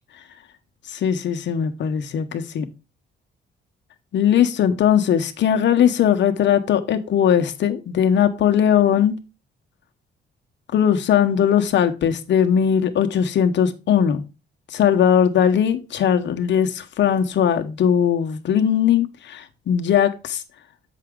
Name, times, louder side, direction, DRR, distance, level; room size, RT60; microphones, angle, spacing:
voice 1, 0.9-2.6 4.1-9.2 10.7-14.2 14.7-20.4, left 9 dB, 65° left, 1.0 m, -19 dB
7.5 x 5.9 x 3.7 m
cardioid pair, 90°, 20 cm